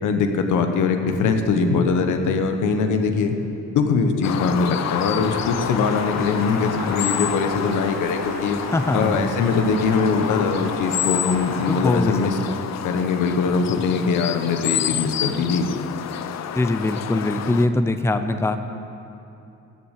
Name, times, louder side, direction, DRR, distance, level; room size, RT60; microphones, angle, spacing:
voice 1, 0.0-3.4 3.7-8.6 8.9-12.4 12.8-15.7, left 5 dB, 80° left, 6 dB, 1.2 m, -22 dB
sound 1, 4.2-17.7, left 9 dB, 60° left, 0.6 m, -29 dB
Boiling, 5.0-11.8, right 2 dB, 60° right, 3.7 m, -37 dB
voice 2, 8.7-9.3 11.7-12.6 16.5-18.6, left 2 dB, 10° left, 9 dB, 0.6 m, -22 dB
14.0 x 7.2 x 8.1 m, 2.8 s
cardioid pair, 90°, 30 cm